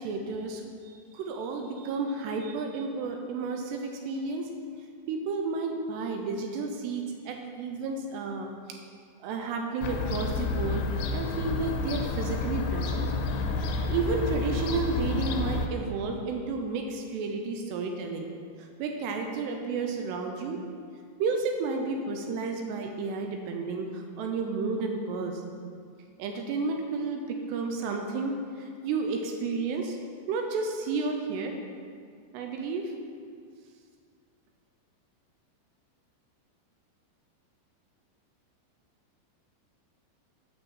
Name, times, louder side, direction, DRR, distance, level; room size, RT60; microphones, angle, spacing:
voice 1, 0.0-4.5 5.1-8.5 9.2-10.9 11.1-13.1 13.6-18.3 18.6-20.6 21.2-25.4 26.2-30.0 30.3-31.6 32.3-32.9, right 4 dB, 80° right, 3 dB, 2.7 m, -32 dB
Fowl / Gull seagull, 9.8-15.7, left 3 dB, 80° left, 2.8 m, -30 dB
9.0 x 6.0 x 7.3 m, 2.1 s
omnidirectional pair, 5.3 m